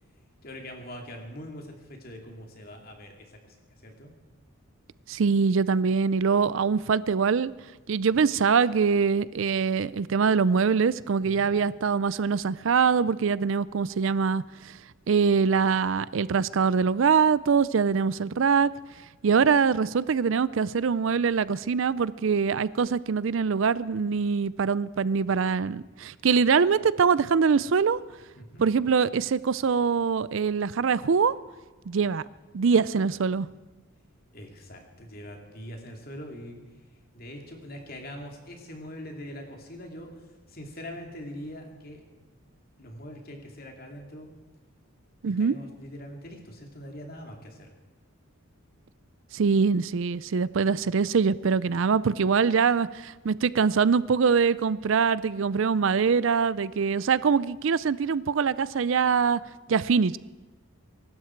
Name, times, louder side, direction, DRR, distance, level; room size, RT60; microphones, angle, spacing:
voice 1, 0.4-3.6 3.8-4.1 11.2-11.5 28.4-28.6 34.3-36.6 37.1-40.1 40.5-42.0 42.8-44.3 45.4-47.7, equal, 45° left, 2 dB, 2.7 m, -42 dB
voice 2, 5.1-7.5 7.9-14.4 15.1-18.7 19.2-28.0 28.6-31.3 31.9-32.2 32.5-33.5 45.2-45.5 49.3-59.4 59.7-60.2, right 5 dB, 65° right, 18 dB, 0.4 m, -23 dB
24.0 x 12.0 x 4.6 m, 1.3 s
head